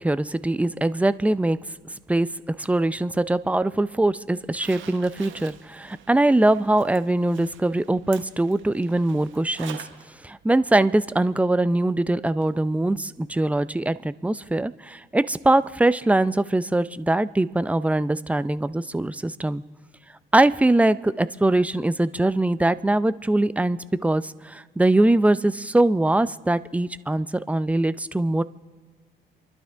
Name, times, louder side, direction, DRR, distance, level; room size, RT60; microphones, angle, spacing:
voice 1, 0.0-1.6 2.1-9.9 10.2-19.6 20.3-28.4, right 2 dB, 5° right, 15 dB, 0.5 m, -22 dB
Zipper (clothing), 4.4-10.0 10.4-10.5 12.4-12.5 12.9-13.0, right 9 dB, 75° right, 1.3 m, -45 dB
27.5 x 12.0 x 3.4 m, 1.5 s
cardioid pair, 90°, 20 cm